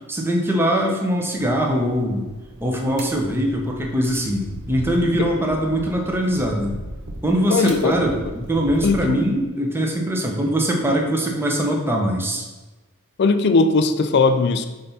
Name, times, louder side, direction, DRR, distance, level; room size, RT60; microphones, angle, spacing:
voice 1, 0.1-2.3 2.6-6.8 7.2-12.4, equal, 10° right, 0 dB, 0.9 m, -22 dB
sound 1, 1.4-9.3, right 1 dB, 60° right, 0.9 m, -38 dB
voice 2, 7.5-8.0 8.8-9.2 13.2-14.7, left 3 dB, 50° left, 9 dB, 0.4 m, -18 dB
5.3 x 4.0 x 5.7 m, 1.1 s
head